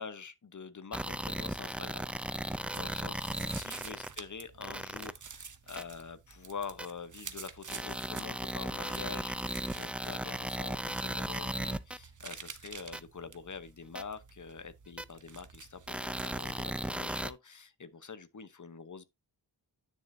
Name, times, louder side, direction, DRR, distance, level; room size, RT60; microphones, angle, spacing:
voice 1, 0.0-19.0, left 5 dB, 40° left, 0.9 m, -46 dB
sound 1, 0.9-4.1 4.6-5.1 5.8-5.9 6.8-6.9 7.7-12.0 12.9-13.0 13.9-14.0 15.0-15.1 15.9-17.3, right 1 dB, 5° right, 0.4 m, -36 dB
sound 2, 2.7-16.8, right 6 dB, 45° right, 0.8 m, -50 dB
9.5 x 6.6 x 2.7 m
wide cardioid pair, 75°, 44 cm